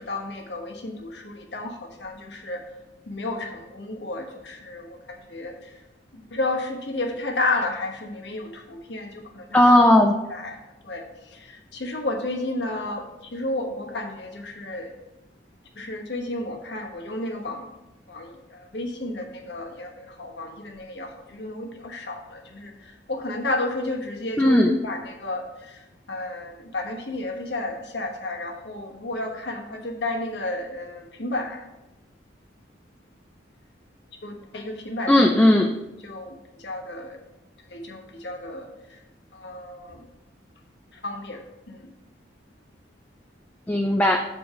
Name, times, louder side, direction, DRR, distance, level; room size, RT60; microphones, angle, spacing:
voice 1, 0.0-2.6 3.1-5.8 6.1-9.6 10.3-10.6 10.8-14.9 15.8-17.7 18.1-31.6 34.2-35.3 36.0-37.2 37.7-39.0 39.3-40.1 40.9-41.9, left 2 dB, 70° left, 2 dB, 1.2 m, -32 dB
voice 2, 9.5-10.2 24.4-24.8 35.1-35.7 43.7-44.2, left 1 dB, 10° left, 2 dB, 0.3 m, -16 dB
7.4 x 4.3 x 4.9 m, 0.96 s
head